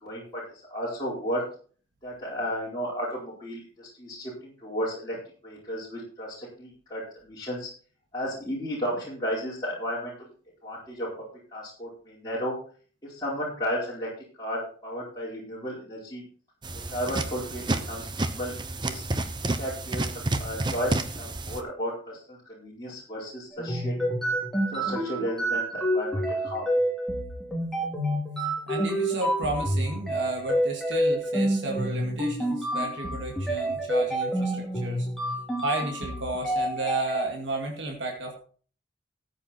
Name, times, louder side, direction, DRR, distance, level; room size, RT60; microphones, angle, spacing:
voice 1, 0.0-1.4 2.0-5.2 5.4-7.7 8.1-10.3 10.6-11.1 11.5-12.6 13.0-14.1 14.4-16.2 16.7-18.5 18.8-19.0 19.4-20.1 20.3-23.9 24.7-26.7, equal, 20° left, -7 dB, 4.4 m, -33 dB
sound 1, 16.6-21.6, right 2 dB, 25° right, 0.8 m, -30 dB
sound 2, 23.5-37.2, right 1 dB, ahead, 2.8 m, -28 dB
voice 2, 28.7-35.1 35.6-38.4, right 2 dB, 75° right, 1 dB, 2.1 m, -33 dB
14.0 x 7.9 x 4.3 m, 0.42 s
head